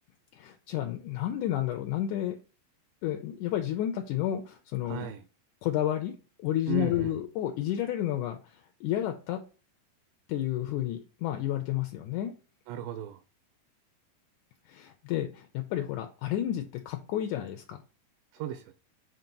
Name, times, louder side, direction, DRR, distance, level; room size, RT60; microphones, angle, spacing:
voice 1, 0.4-2.4 3.0-5.1 5.6-6.1 6.4-8.4 8.8-9.4 10.3-12.3 14.7-17.8, left 12 dB, 75° left, 1.9 m, -31 dB
voice 2, 4.8-5.2 6.7-7.2 12.7-13.2 18.3-18.7, right 9 dB, 80° right, 2.3 m, -36 dB
7.8 x 2.9 x 5.2 m
omnidirectional pair, 4.2 m